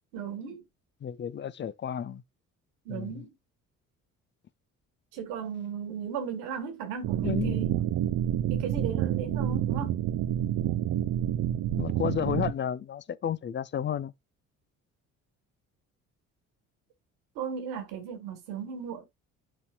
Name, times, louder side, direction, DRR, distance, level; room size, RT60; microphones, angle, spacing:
voice 1, 0.1-0.6 2.9-3.3 5.1-7.9 8.5-10.0 17.4-19.1, right 7 dB, 65° right, 2.3 m, -36 dB
voice 2, 1.0-2.2 2.9-3.1 7.2-7.8 11.8-14.1, left 9 dB, 30° left, 0.6 m, -32 dB
sound 1, 7.0-12.5, right 11 dB, 50° right, 0.7 m, -28 dB
10.5 x 4.2 x 2.4 m
figure-of-eight pair, 50°, 41 cm